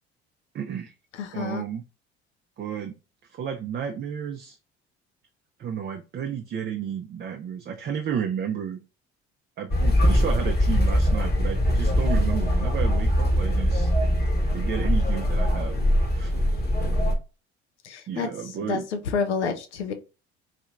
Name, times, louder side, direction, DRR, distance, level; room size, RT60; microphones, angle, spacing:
voice 1, 0.5-0.9 1.3-1.8 2.6-2.9 3.2-4.6 5.6-8.8 9.6-13.9 14.5-15.8 16.1-16.3 16.8-17.1 18.1-18.9, right 8 dB, 30° right, 0.4 m, -32 dB
voice 2, 1.2-1.6 17.8-18.3 18.6-18.8 19.1-19.9, left 5 dB, 85° left, 0.5 m, -28 dB
sound 1, 9.7-17.2, equal, 30° left, 1.0 m, -22 dB
3.3 x 2.7 x 2.4 m
figure-of-eight pair, 55°, 33 cm